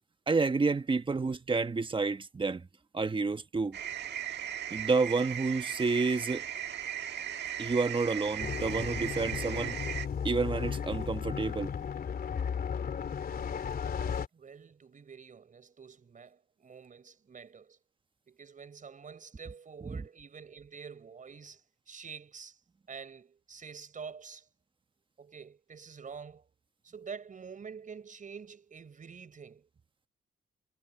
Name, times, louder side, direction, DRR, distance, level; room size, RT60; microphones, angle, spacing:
voice 1, 0.3-2.7 2.9-3.8 4.7-6.5 7.6-9.8 10.2-11.7 19.8-20.0, right 4 dB, 25° right, 1.4 m, -29 dB
sound 1, 3.7-10.1, right 10 dB, 60° right, 1.6 m, -37 dB
sound 2, 8.4-14.3, left 7 dB, 50° left, 3.2 m, -35 dB
voice 2, 14.3-17.8 18.3-22.6 22.9-24.5 25.2-26.4 26.8-29.7, right 6 dB, 40° right, 5.2 m, -47 dB
cardioid pair, 90°, 20 cm